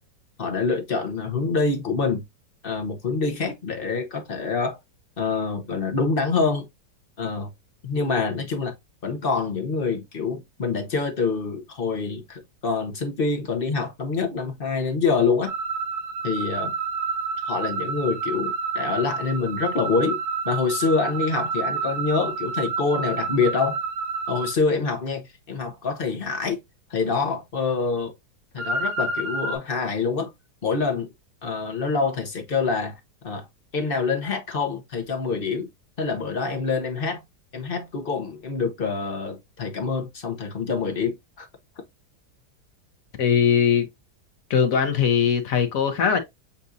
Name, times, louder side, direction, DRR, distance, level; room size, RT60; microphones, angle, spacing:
voice 1, 0.4-2.2 2.6-4.8 5.2-6.7 7.2-7.5 7.8-8.7 9.0-15.5 16.2-16.7 17.4-20.2 20.4-23.8 24.3-26.6 26.9-28.1 28.5-30.3 30.6-31.1 31.4-33.5 33.7-35.7 36.0-37.2 37.5-41.5, left 4 dB, 40° left, 0.9 m, -26 dB
sound 1, 15.5-24.5 28.6-29.6, right 4 dB, 80° right, 1.4 m, -29 dB
voice 2, 43.2-43.9 44.5-46.2, left 7 dB, 60° left, 1.2 m, -20 dB
7.0 x 2.6 x 2.6 m
omnidirectional pair, 1.8 m